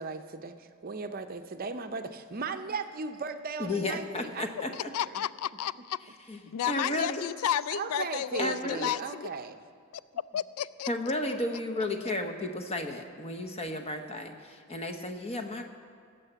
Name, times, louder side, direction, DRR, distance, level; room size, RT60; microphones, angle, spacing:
voice 1, 0.0-4.5 4.8-4.9 7.7-9.6, right 4 dB, 40° right, 8 dB, 0.6 m, -37 dB
voice 2, 3.6-4.9 6.3-6.4 6.7-7.2 8.4-8.9 10.9-15.6, left 1 dB, 30° left, 5 dB, 1.0 m, -33 dB
voice 3, 4.7-6.0 6.5-9.3 9.9-10.0 10.3-10.9 11.3-12.1, left 10 dB, 80° left, 18 dB, 0.3 m, -33 dB
17.5 x 6.6 x 8.0 m, 2.2 s
head